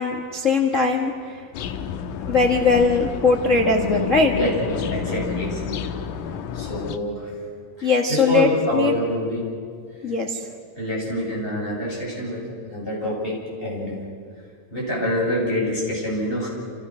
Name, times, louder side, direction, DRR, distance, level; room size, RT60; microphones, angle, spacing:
voice 1, 0.0-1.3 2.3-4.3 7.8-8.5 8.7-8.9 10.0-10.4, left 4 dB, 40° left, 3 dB, 1.1 m, -20 dB
sound 1, 1.5-7.0, left 7 dB, 75° left, 2.5 m, -30 dB
voice 2, 4.3-5.9 6.5-7.3 7.8-9.5 10.8-14.0 14.7-16.5, equal, 15° left, -4 dB, 8.1 m, -26 dB
29.5 x 28.5 x 6.3 m, 2.1 s
omnidirectional pair, 3.9 m